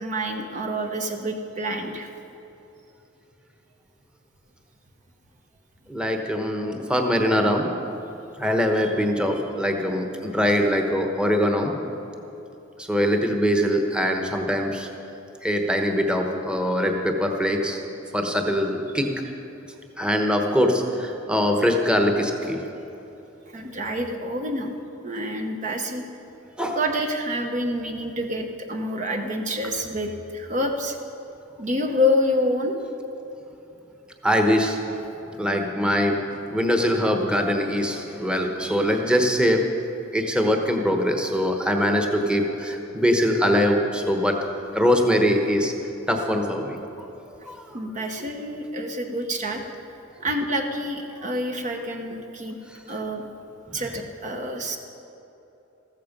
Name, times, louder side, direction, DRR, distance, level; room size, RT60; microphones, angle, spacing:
voice 1, 0.0-2.1 23.5-24.7 25.0-26.0 26.7-31.0 31.6-32.8 47.7-49.6 50.2-52.6 52.9-53.3 53.7-54.8, left 1 dB, 40° right, 3 dB, 0.9 m, -27 dB
voice 2, 5.9-7.7 8.4-11.7 12.8-14.9 15.4-17.8 18.1-19.1 20.0-22.6 26.6-26.8 34.2-34.8 35.4-36.2 36.5-39.6 40.1-44.4 44.7-45.7 46.1-46.8 47.5-47.8 53.7-53.8, equal, 5° right, 3 dB, 1.1 m, -22 dB
14.5 x 14.5 x 5.3 m, 3.0 s
head